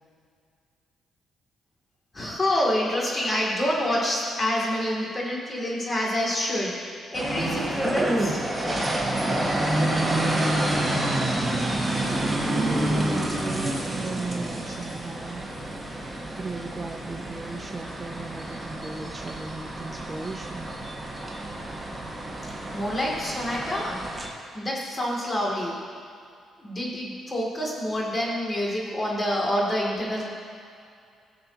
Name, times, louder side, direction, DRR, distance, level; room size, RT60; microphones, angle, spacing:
voice 1, 2.1-8.4 22.7-24.1 24.5-25.8 26.6-30.2, left 1 dB, 25° left, -3 dB, 2.6 m, -27 dB
sound 1, 7.1-24.3, right 1 dB, 5° right, 1.7 m, -28 dB
voice 2, 12.5-15.4 16.0-20.7, right 4 dB, 30° right, 2 dB, 0.7 m, -35 dB
18.0 x 6.7 x 2.9 m, 2.3 s
cardioid pair, 90°, 0 cm